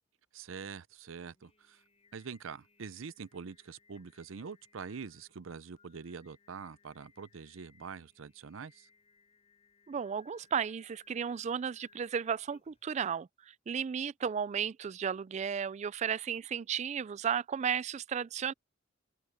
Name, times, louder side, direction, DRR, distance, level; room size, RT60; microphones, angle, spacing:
voice 1, 0.3-1.8 2.1-8.9, right 5 dB, 80° right, 0.6 m, -45 dB
Singing, 1.2-12.9, left 4 dB, 30° left, 6.3 m, -66 dB
voice 2, 9.9-18.5, right 7 dB, 35° right, 0.3 m, -34 dB
open air
head